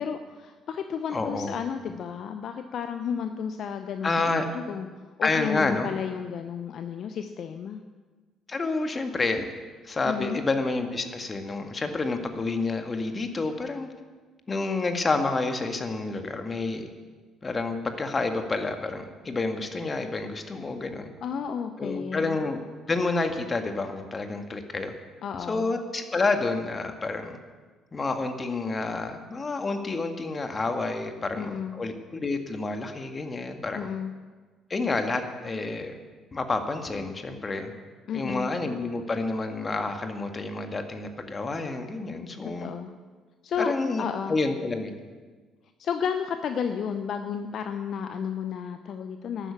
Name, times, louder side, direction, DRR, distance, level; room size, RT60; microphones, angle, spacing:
voice 1, 0.0-4.2 4.5-4.9 5.2-7.8 10.0-10.4 21.2-22.4 25.2-25.7 31.3-31.8 33.8-34.1 38.1-38.5 42.4-42.9 43.4-44.4 45.8-49.5, left 7 dB, 55° left, 8 dB, 0.7 m, -32 dB
voice 2, 1.1-1.5 4.0-4.5 5.2-5.9 8.5-9.4 9.8-13.9 14.5-16.9 17.4-21.1 21.8-22.6 22.9-24.9 25.5-27.4 27.9-33.9 34.7-36.0 36.3-37.7 38.1-42.7 43.6-44.9, left 3 dB, 30° left, 6 dB, 1.8 m, -29 dB
12.0 x 9.1 x 8.4 m, 1.4 s
hypercardioid pair, 50°, 0 cm